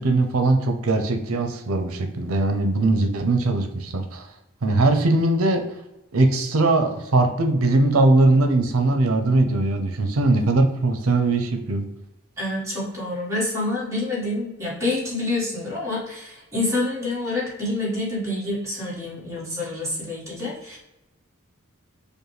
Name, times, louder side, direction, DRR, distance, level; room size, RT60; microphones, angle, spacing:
voice 1, 0.0-4.3 4.6-5.6 6.1-11.8, right 2 dB, 85° right, 6 dB, 0.6 m, -20 dB
voice 2, 12.4-20.8, left 2 dB, 15° right, -7 dB, 1.5 m, -27 dB
5.2 x 2.2 x 3.1 m, 0.92 s
head